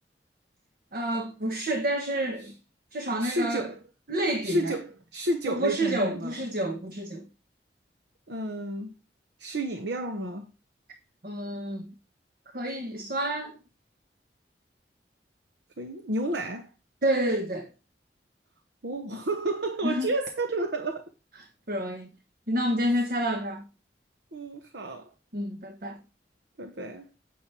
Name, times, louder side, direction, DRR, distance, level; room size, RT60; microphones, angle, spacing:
voice 1, 0.9-2.5 2.9-3.7 4.1-4.8 5.5-7.2 11.2-11.9 12.5-13.6 17.0-17.7 19.8-20.1 21.7-22.1 22.5-23.6 25.3-26.0, right 1 dB, 55° right, 1.2 m, -29 dB
voice 2, 3.2-3.8 4.4-6.4 8.3-8.9 9.4-10.5 15.8-16.7 18.8-21.1 24.3-25.1 26.6-27.1, right 1 dB, 70° right, 1.0 m, -31 dB
10.0 x 7.7 x 3.4 m
head